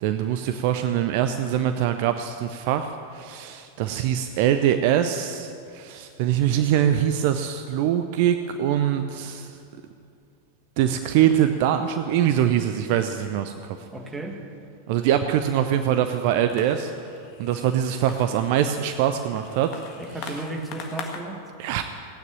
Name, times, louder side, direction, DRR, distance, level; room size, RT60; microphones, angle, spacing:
voice 1, 0.0-9.6 10.8-13.9 14.9-19.7 20.2-20.4 21.6-21.8, right 10 dB, 45° right, 8 dB, 0.6 m, -23 dB
voice 2, 13.9-14.5 20.0-21.5, right 2 dB, 10° right, 3 dB, 1.8 m, -34 dB
sound 1, 16.2-21.2, left 5 dB, 40° left, 1.7 m, -42 dB
16.5 x 9.3 x 8.8 m, 2.4 s
figure-of-eight pair, 90°, 0 cm